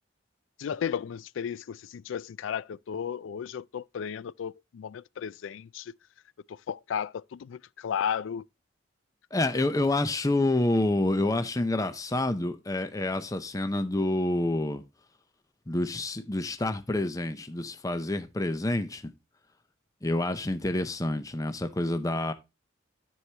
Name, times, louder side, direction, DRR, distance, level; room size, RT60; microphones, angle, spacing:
voice 1, 0.6-5.9 6.5-8.4, left 8 dB, 75° left, 0.3 m, -34 dB
voice 2, 9.3-14.8 15.7-19.1 20.0-22.3, left 2 dB, 15° left, 0.5 m, -28 dB
13.0 x 4.7 x 2.8 m
head